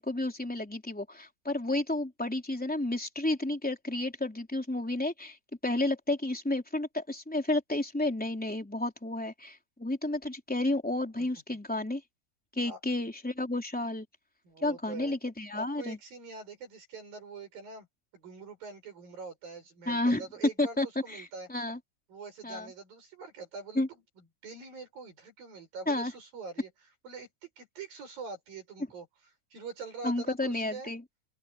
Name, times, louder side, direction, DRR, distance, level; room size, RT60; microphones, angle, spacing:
voice 1, 0.0-5.4 5.6-12.0 12.5-14.0 14.6-16.0 19.9-20.2 20.6-21.8 22.4-22.7 23.7-23.9 25.9-26.1 30.0-31.0, left 2 dB, 5° left, 3.2 m, -31 dB
voice 2, 14.4-15.1 15.5-17.9 18.1-21.5 22.1-24.0 24.4-26.7 27.0-29.1 29.5-30.9, right 4 dB, 85° right, 9.4 m, -44 dB
open air
omnidirectional pair, 4.0 m